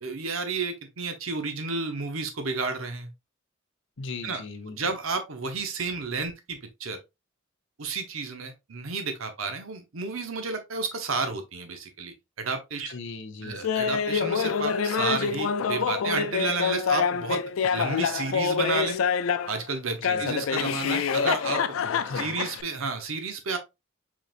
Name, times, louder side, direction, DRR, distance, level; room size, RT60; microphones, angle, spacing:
voice 1, 0.0-3.1 4.2-4.4 4.8-7.0 7.8-12.9 13.4-17.4 17.7-19.0 19.5-21.6 22.1-23.6, right 4 dB, 80° right, 0.9 m, -31 dB
voice 2, 4.0-4.9 12.8-13.7 20.0-20.3 21.8-22.4, left 3 dB, 65° left, 0.9 m, -39 dB
Laughter, 13.6-19.6 20.0-22.6, left 6 dB, 80° left, 0.4 m, -26 dB
4.8 x 3.9 x 2.5 m
head